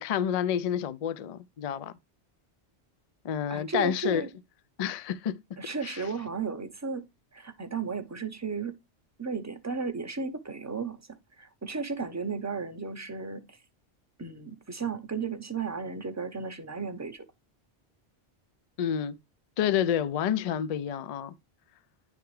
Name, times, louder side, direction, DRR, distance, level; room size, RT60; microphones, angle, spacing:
voice 1, 0.0-1.9 3.2-4.2 4.8-5.4 5.8-5.9 18.8-19.2 19.6-21.3, left 9 dB, 55° left, 0.4 m, -29 dB
voice 2, 3.5-4.3 5.6-7.1 7.3-8.8 9.2-13.6 14.2-17.2, right 5 dB, 20° right, 0.6 m, -34 dB
9.7 x 3.4 x 3.1 m
omnidirectional pair, 1.1 m